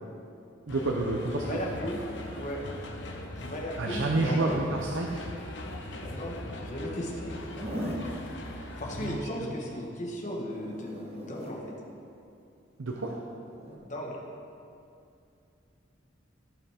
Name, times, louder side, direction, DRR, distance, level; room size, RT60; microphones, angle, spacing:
sound 1, 0.7-9.2, left 1 dB, 65° left, 0.9 m, -40 dB
voice 1, 0.7-1.6 3.8-5.2 9.0-9.5 12.8-13.2, right 2 dB, 80° right, 0 dB, 0.7 m, -29 dB
voice 2, 1.3-2.0 2.3-2.6 3.3-4.6 6.0-7.4 8.2-11.8 13.8-14.2, equal, 40° left, -2 dB, 1.4 m, -36 dB
Zipper (clothing), 7.4-8.1 10.3-11.6 13.5-13.8, equal, 30° right, 1.2 m, -38 dB
15.0 x 5.7 x 3.6 m, 2.6 s
head